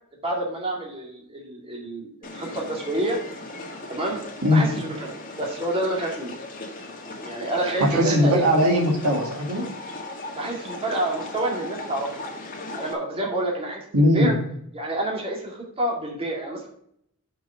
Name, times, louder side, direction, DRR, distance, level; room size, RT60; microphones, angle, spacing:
voice 1, 0.2-3.2 3.9-4.2 4.5-5.1 5.4-6.3 7.2-8.4 10.3-12.3 12.7-14.3 14.7-16.7, right 1 dB, 25° right, -2 dB, 2.2 m, -28 dB
sound 1, 2.2-12.9, left 2 dB, 40° left, 1.8 m, -38 dB
voice 2, 7.8-9.7 13.9-14.4, left 1 dB, 75° right, 0 dB, 2.2 m, -19 dB
6.0 x 5.6 x 6.3 m, 0.70 s
head